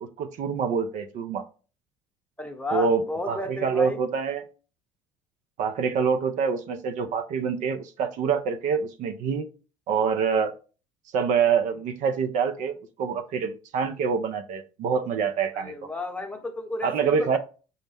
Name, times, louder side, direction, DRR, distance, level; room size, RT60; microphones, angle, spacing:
voice 1, 0.0-1.4 2.7-4.4 5.6-9.5 9.9-10.5 11.1-15.7 16.8-17.4, right 6 dB, 55° right, 0.5 m, -26 dB
voice 2, 2.4-4.0 15.5-17.4, left 2 dB, 10° left, 0.9 m, -33 dB
5.5 x 2.0 x 3.4 m
hypercardioid pair, 75°, 15 cm